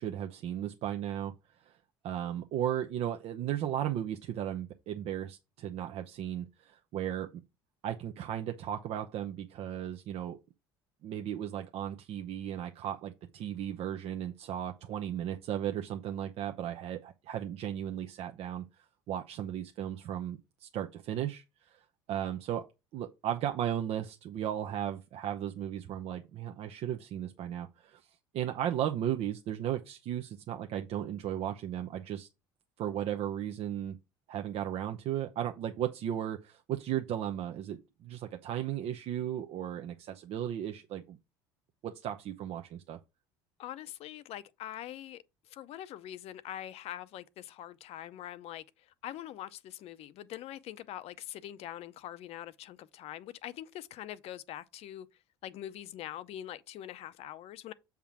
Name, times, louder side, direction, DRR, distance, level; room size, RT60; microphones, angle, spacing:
voice 1, 0.0-1.3 1.6-1.8 2.0-7.3 7.8-10.4 11.0-21.8 22.1-22.7 22.9-32.3 32.8-34.0 34.3-41.2 41.8-43.0, right 10 dB, 60° right, 0.8 m, -35 dB
voice 2, 43.6-45.2 45.5-48.6 49.0-55.1 55.4-57.7, left 12 dB, 60° left, 0.7 m, -43 dB
7.3 x 3.6 x 5.9 m
hypercardioid pair, 80°, 12 cm